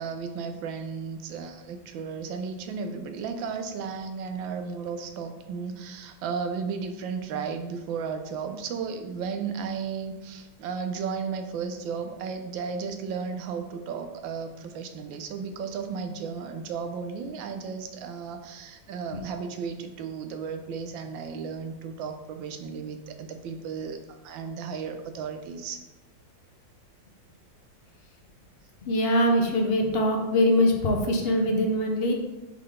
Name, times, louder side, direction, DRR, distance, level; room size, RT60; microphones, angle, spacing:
voice 1, 0.0-25.8, right 5 dB, 85° right, 7 dB, 1.4 m, -34 dB
voice 2, 28.8-32.1, left 1 dB, 65° left, 3 dB, 0.5 m, -23 dB
5.6 x 3.8 x 4.9 m, 1.0 s
omnidirectional pair, 2.0 m